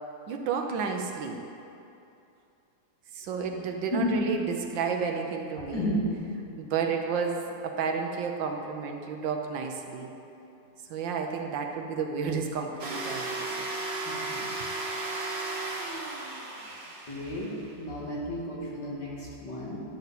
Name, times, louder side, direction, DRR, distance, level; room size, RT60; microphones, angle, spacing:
voice 1, 0.3-1.4 3.1-5.9 6.6-10.1 10.9-13.7, right 5 dB, 70° right, 3 dB, 1.4 m, -31 dB
voice 2, 5.6-6.1 12.2-12.4 14.0-14.5 17.1-19.8, left 1 dB, 60° left, -5 dB, 2.5 m, -32 dB
sound 1, 12.8-17.8, right 2 dB, 40° right, 1.2 m, -35 dB
12.0 x 8.1 x 4.1 m, 2.7 s
omnidirectional pair, 2.2 m